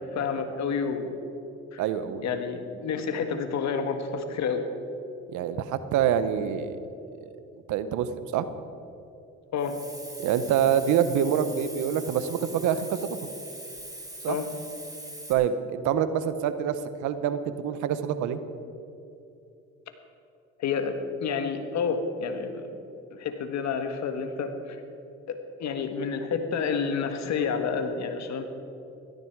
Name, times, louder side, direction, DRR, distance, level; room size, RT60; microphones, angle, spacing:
voice 1, 0.1-1.1 1.7-1.8 2.2-4.6 9.5-9.8 14.3-14.5 20.6-20.9 21.2-22.8 23.1-24.8 25.3-28.4, left 5 dB, 65° left, 7 dB, 1.6 m, -29 dB
voice 2, 1.8-2.4 5.3-6.8 7.2-7.3 7.7-8.5 10.2-13.2 14.2-14.4 15.3-18.4, right 9 dB, 80° right, 12 dB, 1.0 m, -26 dB
Hiss, 9.6-15.3, right 1 dB, 10° right, 3.0 m, -42 dB
17.0 x 13.5 x 4.7 m, 2.7 s
supercardioid pair, 70°, 30 cm